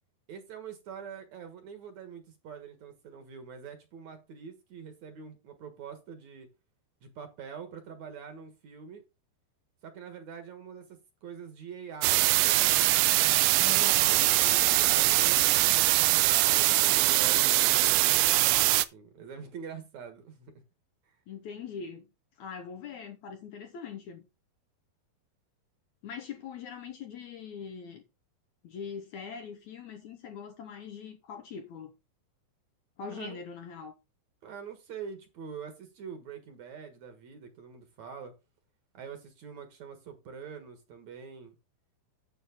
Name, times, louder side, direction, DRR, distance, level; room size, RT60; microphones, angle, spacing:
voice 1, 0.3-6.5 7.0-9.0 9.8-12.8 14.7-20.5 21.1-21.2 33.1-33.4 34.4-38.3 38.9-41.5, right 6 dB, 60° right, 2.4 m, -45 dB
sound 1, 12.0-18.9, right 18 dB, 90° right, 2.5 m, -23 dB
voice 2, 13.6-14.3 21.3-22.1 22.4-24.3 26.0-28.0 28.6-31.9 33.0-33.9, left 6 dB, 70° left, 2.0 m, -42 dB
9.5 x 7.8 x 3.7 m
omnidirectional pair, 4.2 m